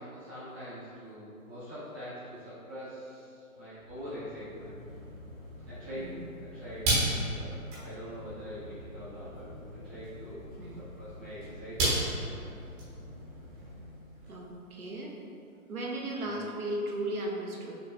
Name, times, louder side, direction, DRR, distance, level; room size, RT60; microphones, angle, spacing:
voice 1, 0.0-4.8 5.7-6.1 6.4-7.5 7.8-9.4 9.8-10.5 10.9-12.6 16.2-16.4, equal, 10° left, -18 dB, 0.5 m, -44 dB
sound 1, 3.8-14.3, right 1 dB, 15° right, 1.1 m, -36 dB
voice 2, 6.0-6.3 10.6-10.8 14.3-15.2 15.7-17.8, right 1 dB, 75° right, -1 dB, 0.9 m, -36 dB
6.4 x 3.1 x 2.3 m, 2.5 s
figure-of-eight pair, 130°, 44 cm